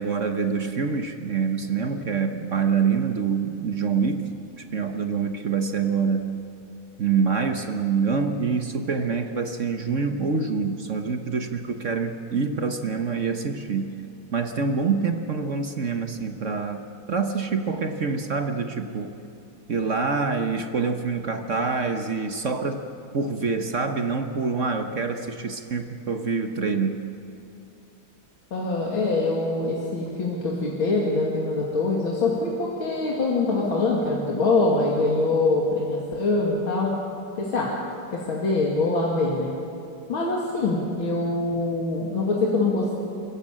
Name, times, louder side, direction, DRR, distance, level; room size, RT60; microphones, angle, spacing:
voice 1, 0.0-4.2 4.6-6.3 7.0-14.0 14.3-19.1 19.7-22.8 23.1-27.0, right 5 dB, 45° right, 6 dB, 1.2 m, -26 dB
voice 2, 28.5-36.9 37.4-37.7 38.1-39.5 40.1-43.0, left 3 dB, 80° left, -3 dB, 3.1 m, -24 dB
30.0 x 15.0 x 8.8 m, 2.7 s
omnidirectional pair, 2.2 m